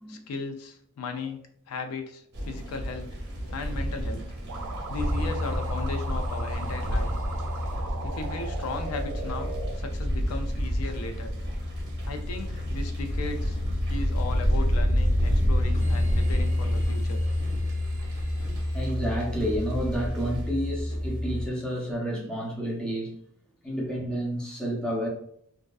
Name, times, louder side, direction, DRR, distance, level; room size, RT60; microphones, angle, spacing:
voice 1, 0.1-1.4 1.7-3.1 3.5-4.3 4.9-7.1 8.0-9.5 9.8-11.3 12.0-13.6 13.8-17.2, left 3 dB, 75° left, 0.3 m, -36 dB
sound 1, 2.3-20.5, equal, 50° right, 0.6 m, -31 dB
sound 2, 4.5-9.7, right 3 dB, 85° right, 0.4 m, -38 dB
sound 3, 5.0-21.5, left 1 dB, 55° left, 1.1 m, -30 dB
voice 2, 18.7-23.2 23.6-25.1, equal, 5° left, 0.5 m, -30 dB
2.4 x 2.3 x 2.3 m
head